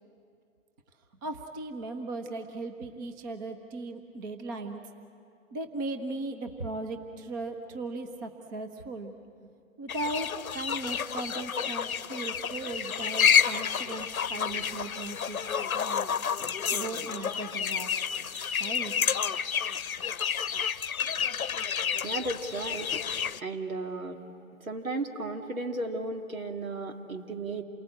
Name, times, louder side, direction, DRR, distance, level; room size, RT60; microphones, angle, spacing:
voice 1, 1.2-4.8 5.5-9.1 9.8-15.4 15.7-16.1 16.7-17.9 18.6-18.9, right 2 dB, 15° right, 6 dB, 0.7 m, -37 dB
sound 1, 9.9-23.4, left 7 dB, 90° left, 0.8 m, -29 dB
voice 2, 22.0-22.9 23.4-24.2 24.7-27.6, right 2 dB, 80° right, 4 dB, 2.6 m, -34 dB
28.0 x 19.0 x 8.5 m, 2.6 s
hypercardioid pair, 150°, 41 cm